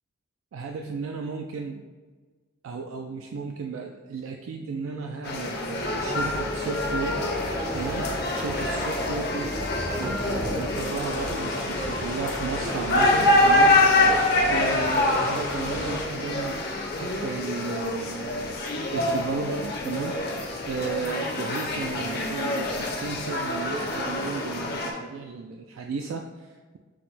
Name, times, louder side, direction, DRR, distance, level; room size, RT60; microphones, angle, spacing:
voice 1, 0.5-1.8 2.6-7.3 7.7-9.6 10.0-13.8 14.5-16.7 17.0-18.6 18.9-20.2 20.7-26.8, right 5 dB, 80° right, 3 dB, 0.3 m, -34 dB
sound 1, 5.2-24.9, left 2 dB, 50° left, 0.7 m, -26 dB
sound 2, 5.8-16.0, right 1 dB, 15° right, 0.4 m, -35 dB
sound 3, 10.8-16.1, left 2 dB, 70° left, 1.0 m, -37 dB
6.2 x 2.1 x 4.0 m, 1.4 s
head